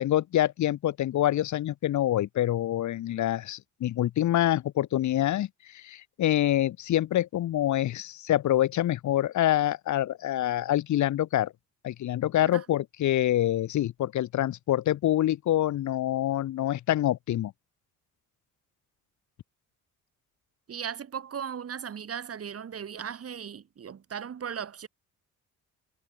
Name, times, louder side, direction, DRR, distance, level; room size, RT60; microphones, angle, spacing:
voice 1, 0.0-5.5 5.7-11.5 11.8-17.5, left 13 dB, 70° left, 1.5 m, -26 dB
voice 2, 20.7-24.9, right 8 dB, 50° right, 4.6 m, -37 dB
cardioid pair, 90°, 30 cm